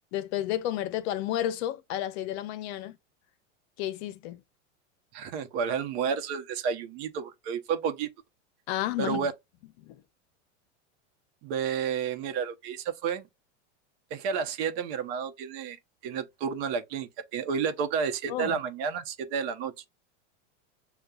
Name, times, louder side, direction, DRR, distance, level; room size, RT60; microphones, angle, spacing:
voice 1, 0.1-3.0 3.8-4.4 8.7-9.3 9.8-10.0 18.3-18.6, left 12 dB, 60° left, 0.7 m, -31 dB
voice 2, 5.1-8.1 9.0-9.3 11.4-13.3 14.1-15.8 16.0-19.8, right 6 dB, 55° right, 0.9 m, -31 dB
6.6 x 2.4 x 2.3 m
supercardioid pair, 130°, 36 cm